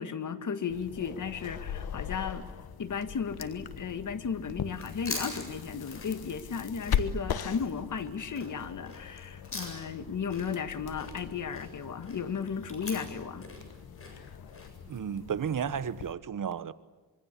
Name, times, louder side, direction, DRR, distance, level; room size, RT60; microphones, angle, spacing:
voice 1, 0.0-2.5 2.8-13.5, left 6 dB, 55° left, 1.8 m, -35 dB
sound 1, 0.7-16.1, left 8 dB, 85° left, 1.4 m, -39 dB
Chewing mastication, 4.7-10.0 10.3-14.7, left 2 dB, 35° left, 7.7 m, -43 dB
voice 2, 14.9-16.7, right 7 dB, 60° right, 1.2 m, -33 dB
25.5 x 23.5 x 8.4 m
wide cardioid pair, 105°, 36 cm